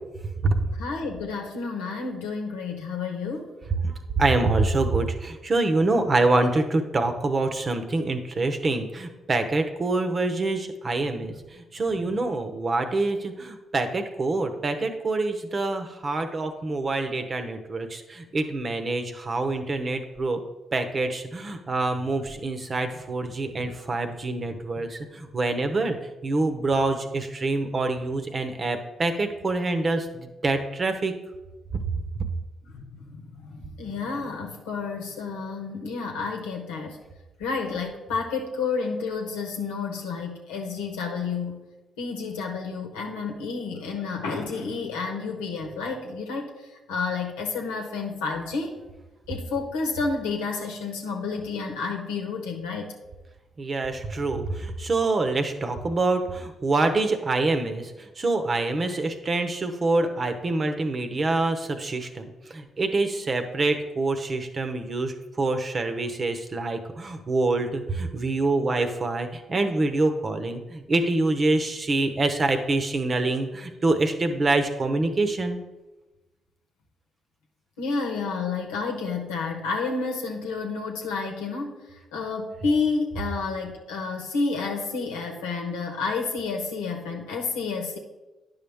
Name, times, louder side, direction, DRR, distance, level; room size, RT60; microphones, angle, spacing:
voice 1, 0.7-3.5 23.5-23.7 31.9-32.0 32.7-37.0 37.4-41.6 42.0-48.8 49.3-52.9 77.8-81.8 82.1-88.0, left 4 dB, 85° left, 1 dB, 1.1 m, -30 dB
voice 2, 3.8-20.4 20.7-26.0 26.2-31.1 53.6-75.6, right 2 dB, 45° right, 7 dB, 0.9 m, -26 dB
9.9 x 5.6 x 3.5 m, 1.1 s
hypercardioid pair, 45°, 0 cm